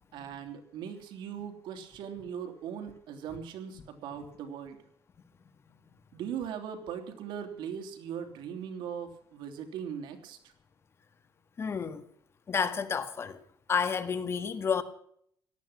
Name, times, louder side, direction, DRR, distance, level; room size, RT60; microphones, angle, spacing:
voice 1, 0.1-4.8 6.1-10.5, right 8 dB, 85° right, 3.2 m, -39 dB
voice 2, 11.6-12.0 12.5-13.4 13.7-14.8, left 6 dB, 35° left, 1.6 m, -30 dB
17.5 x 13.0 x 6.0 m
cardioid pair, 145°, 8 cm